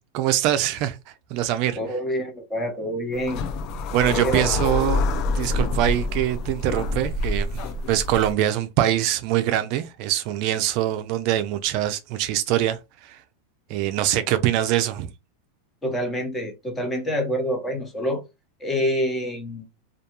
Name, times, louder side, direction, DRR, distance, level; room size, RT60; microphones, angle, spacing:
voice 1, 0.1-1.0 1.3-1.8 3.9-5.0 5.3-13.2 13.7-15.1, right 12 dB, 50° right, 0.3 m, -23 dB
voice 2, 1.7-3.4 4.0-4.4 15.8-18.2 18.6-19.6, equal, 15° left, 0.9 m, -27 dB
sound 1, 3.1-8.3, left 2 dB, 45° left, 0.3 m, -26 dB
2.3 x 2.2 x 2.9 m
supercardioid pair, 130°, 0 cm